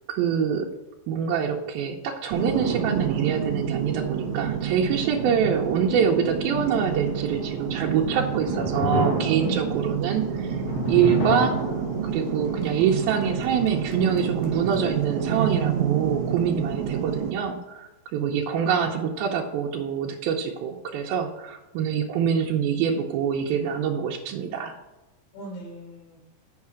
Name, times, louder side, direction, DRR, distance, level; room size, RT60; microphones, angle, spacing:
voice 1, 0.1-0.7 1.1-10.6 10.9-11.5 12.0-24.7, right 7 dB, 90° right, -1 dB, 2.6 m, -25 dB
sound 1, 2.3-17.3, right 8 dB, 65° right, 1.9 m, -29 dB
sound 2, 7.9-15.1, left 2 dB, 60° left, 2.5 m, -32 dB
voice 2, 9.4-10.2 25.3-26.2, right 2 dB, 75° left, -3 dB, 5.0 m, -39 dB
8.5 x 5.6 x 5.9 m, 1.0 s
omnidirectional pair, 4.2 m